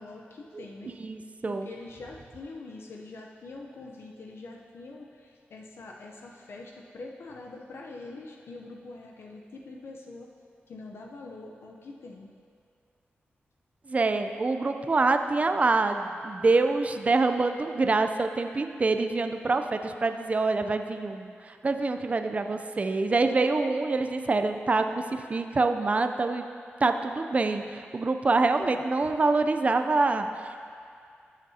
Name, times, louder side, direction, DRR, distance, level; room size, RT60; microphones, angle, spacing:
voice 1, 0.0-1.0 1.5-10.3 10.7-12.3, left 3 dB, 75° left, 0 dB, 0.7 m, -44 dB
voice 2, 1.0-1.7 13.9-26.5 26.8-30.6, right 3 dB, 35° right, 7 dB, 0.4 m, -26 dB
13.5 x 7.3 x 2.8 m, 2.3 s
wide cardioid pair, 85°, 4 cm